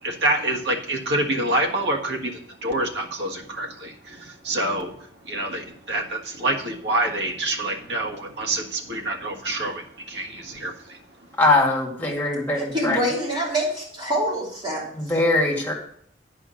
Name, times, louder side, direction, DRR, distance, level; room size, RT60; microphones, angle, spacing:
voice 1, 0.0-5.0 5.2-11.0, right 1 dB, 70° right, 2 dB, 1.6 m, -27 dB
voice 2, 11.4-13.0 15.0-15.7, left 2 dB, 10° left, -1 dB, 2.1 m, -21 dB
voice 3, 12.5-14.9, equal, 25° right, -4 dB, 3.0 m, -26 dB
9.9 x 5.0 x 6.3 m, 0.63 s
head